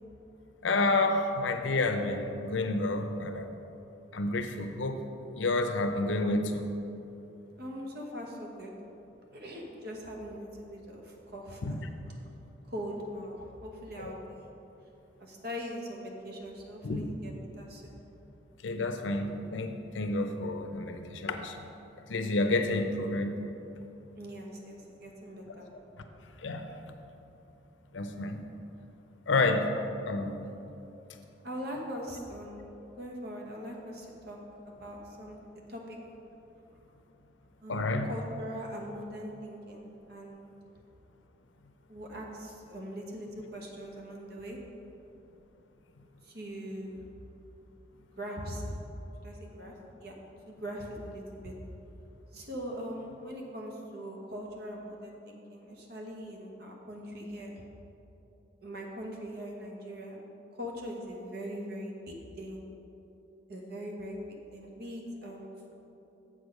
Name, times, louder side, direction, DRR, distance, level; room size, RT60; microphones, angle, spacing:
voice 1, 0.6-3.5 4.1-5.0 5.4-6.7 11.6-11.7 16.8-17.0 18.6-21.7 22.1-23.4 26.4-26.6 27.9-28.4 29.3-29.7 30.1-30.4 37.7-38.1, left 2 dB, 85° left, 7 dB, 0.6 m, -29 dB
voice 2, 7.6-8.7 9.3-12.2 12.7-14.5 15.2-18.0 24.1-25.7 31.4-34.4 34.6-35.4 35.7-36.0 37.6-40.5 41.9-44.6 46.2-47.0 48.2-48.6 49.2-49.7 50.0-50.1 50.5-51.5 52.3-57.6 58.6-60.2 60.6-62.6 63.5-65.7, equal, 55° right, 0 dB, 1.2 m, -41 dB
7.6 x 6.4 x 5.2 m, 2.9 s
head